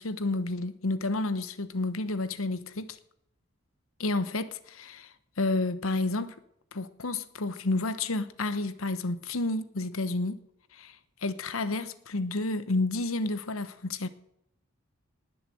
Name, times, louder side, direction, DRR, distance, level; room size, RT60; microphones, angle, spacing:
voice 1, 0.0-3.0 4.0-5.1 5.4-6.3 6.7-10.4 10.7-11.0 11.2-14.1, left 2 dB, 85° left, 1.0 m, -30 dB
19.5 x 6.8 x 7.7 m
head